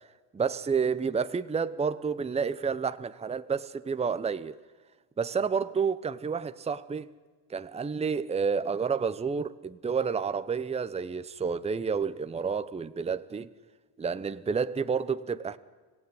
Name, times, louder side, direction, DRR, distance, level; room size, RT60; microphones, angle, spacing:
voice 1, 0.3-4.6 5.2-7.1 7.5-13.5 14.0-15.6, right 5 dB, 15° right, 0.8 m, -30 dB
25.5 x 18.0 x 9.5 m
cardioid pair, 115°, 41 cm